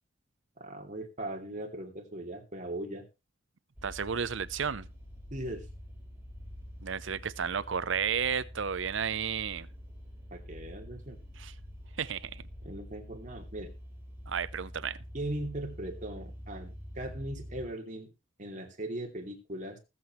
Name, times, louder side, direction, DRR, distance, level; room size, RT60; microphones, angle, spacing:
voice 1, 0.6-3.0 5.3-5.7 10.3-11.2 12.6-13.7 15.1-18.1 18.4-19.8, right 1 dB, 40° right, 2.7 m, -39 dB
sound 1, 3.8-17.7, equal, 10° right, 4.1 m, -46 dB
voice 2, 3.8-4.9 6.8-9.7 11.4-11.5 12.0-12.4 14.3-15.0, right 7 dB, 70° right, 0.7 m, -32 dB
20.0 x 7.7 x 3.2 m
head